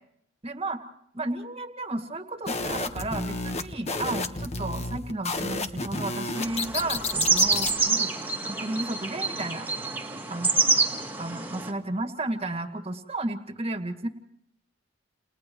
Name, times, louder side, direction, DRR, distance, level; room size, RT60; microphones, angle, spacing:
voice 1, 0.4-0.8 1.1-8.1 8.4-9.7 10.3-10.5 11.2-14.1, right 2 dB, 30° right, 6 dB, 2.0 m, -33 dB
sound 1, 2.5-7.8, left 3 dB, 35° left, 1.4 m, -31 dB
sound 2, 6.4-11.7, right 4 dB, 10° right, 2.0 m, -27 dB
29.5 x 29.5 x 3.2 m, 0.74 s
head